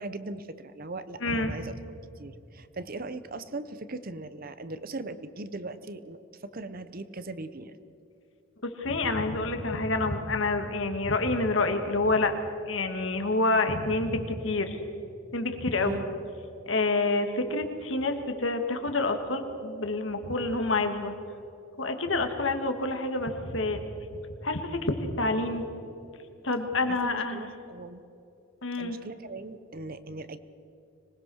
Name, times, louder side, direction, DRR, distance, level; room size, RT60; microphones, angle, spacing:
voice 1, 0.0-1.7 2.2-7.8 15.8-16.1 27.0-28.0 28.8-30.4, right 2 dB, 45° right, 13 dB, 0.9 m, -39 dB
voice 2, 1.2-1.5 8.6-12.3 12.7-14.8 15.3-16.0 16.7-21.1 21.8-23.8 24.4-25.6 26.4-27.4 28.6-29.0, left 2 dB, 65° left, 6 dB, 2.1 m, -28 dB
25.5 x 19.5 x 6.4 m, 2.8 s
head